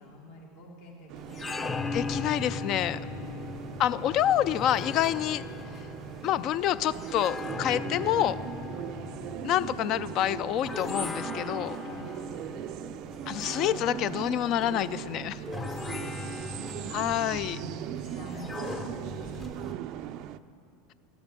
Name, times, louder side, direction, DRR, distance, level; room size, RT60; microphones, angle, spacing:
voice 1, 0.0-2.3 3.1-3.5 11.8-12.1 15.8-16.8 17.5-20.2, left 2 dB, 65° left, -1 dB, 2.2 m, -48 dB
sound 1, 1.1-20.4, right 13 dB, 50° right, 0.3 m, -40 dB
sound 2, 1.2-19.7, left 4 dB, 25° left, 0.7 m, -39 dB
voice 2, 1.9-3.0 3.8-5.4 6.2-8.4 9.4-11.8 13.3-15.4 16.9-17.6, left 12 dB, 45° left, 16 dB, 0.4 m, -27 dB
13.5 x 8.0 x 6.7 m, 2.6 s
hypercardioid pair, 80°, 0 cm